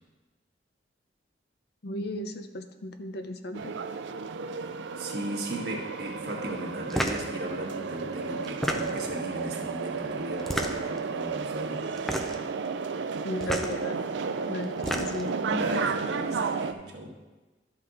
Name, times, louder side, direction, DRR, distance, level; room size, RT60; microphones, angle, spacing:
voice 1, 1.8-3.7 13.2-14.0 14.5-15.3, left 1 dB, 60° left, 7 dB, 0.7 m, -35 dB
sound 1, 3.5-16.7, right 5 dB, 85° right, 0.5 m, -33 dB
voice 2, 5.0-11.9 15.5-17.2, right 1 dB, 65° right, 0 dB, 1.6 m, -36 dB
sound 2, 6.9-7.3 8.4-9.1 10.4-11.0 12.0-12.5 13.4-13.7 14.6-15.3, equal, ahead, 0.6 m, -30 dB
12.5 x 5.6 x 3.9 m, 1.2 s
head